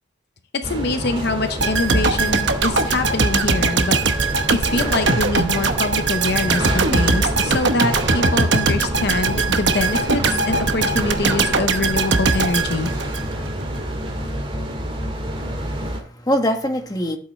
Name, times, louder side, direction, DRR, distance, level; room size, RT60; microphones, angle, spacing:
voice 1, 0.6-4.0 4.2-12.9, left 3 dB, 55° left, 8 dB, 0.7 m, -24 dB
sound 1, 0.6-16.0, equal, 25° right, 2.0 m, -28 dB
sound 2, 1.6-13.6 13.9-14.1, right 3 dB, 60° right, 0.9 m, -21 dB
voice 2, 15.3-17.2, equal, 20° left, 4 dB, 1.2 m, -24 dB
12.0 x 7.9 x 3.2 m, 0.42 s
head